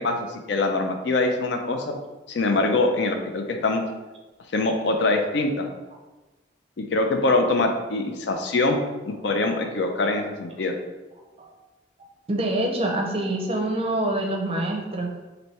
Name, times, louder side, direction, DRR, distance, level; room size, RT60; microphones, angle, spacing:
voice 1, 0.0-1.9 2.3-3.8 4.5-5.7 6.8-8.8 9.0-10.7, left 2 dB, 65° left, 4 dB, 0.5 m, -23 dB
voice 2, 12.3-15.1, right 1 dB, 30° right, 1 dB, 0.5 m, -25 dB
3.2 x 2.6 x 4.1 m, 1.1 s
head